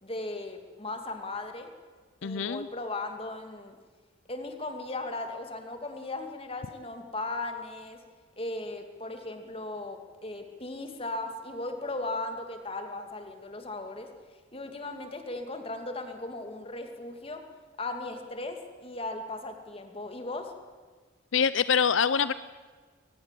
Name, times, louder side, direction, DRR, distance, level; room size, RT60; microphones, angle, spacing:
voice 1, 0.0-1.7 2.2-3.8 4.3-8.0 8.4-14.1 14.5-17.4 17.8-20.5, left 2 dB, 30° left, 6 dB, 2.5 m, -37 dB
voice 2, 2.2-2.7 21.3-22.3, left 7 dB, 80° left, 16 dB, 0.6 m, -25 dB
22.5 x 19.5 x 7.6 m, 1.4 s
head